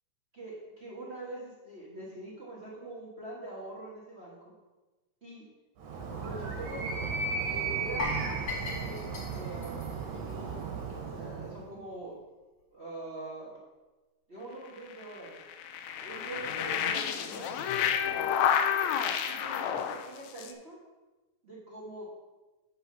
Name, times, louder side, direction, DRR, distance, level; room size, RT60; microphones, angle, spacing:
voice 1, 0.3-4.5 5.2-5.5 6.2-7.1 7.5-8.2 8.8-9.8 10.1-12.2 12.7-13.6 14.3-15.4 15.9-18.3 19.3-20.8 21.4-22.1, right 2 dB, 50° right, -5 dB, 0.7 m, -44 dB
Animal, 5.8-11.6, right 5 dB, 65° right, 2.6 m, -35 dB
sound 1, 8.0-11.0 11.3-11.5 11.9-12.0, left 3 dB, 45° left, 1.5 m, -39 dB
sound 2, 14.8-20.5, left 8 dB, 80° left, 1.7 m, -30 dB
8.7 x 5.6 x 5.6 m, 1.2 s
omnidirectional pair, 3.8 m